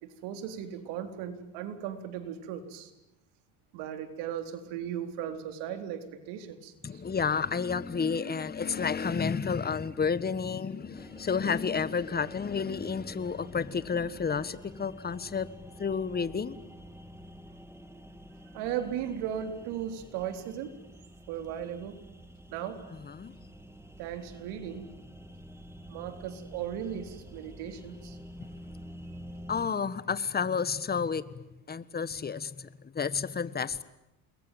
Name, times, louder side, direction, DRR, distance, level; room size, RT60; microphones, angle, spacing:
voice 1, 0.0-2.9 3.7-7.0 18.5-20.7 21.3-22.0 22.5-22.8 24.0-24.9 25.9-28.2, right 9 dB, 75° right, 8 dB, 4.0 m, -37 dB
voice 2, 6.8-15.5 15.8-16.6 23.0-23.3 29.5-31.2 31.7-32.7 32.9-33.8, left 6 dB, 20° left, 16 dB, 1.5 m, -30 dB
sound 1, 11.0-29.7, equal, 5° right, 2.4 m, -48 dB
28.5 x 21.5 x 9.3 m, 0.89 s
supercardioid pair, 95°, 41 cm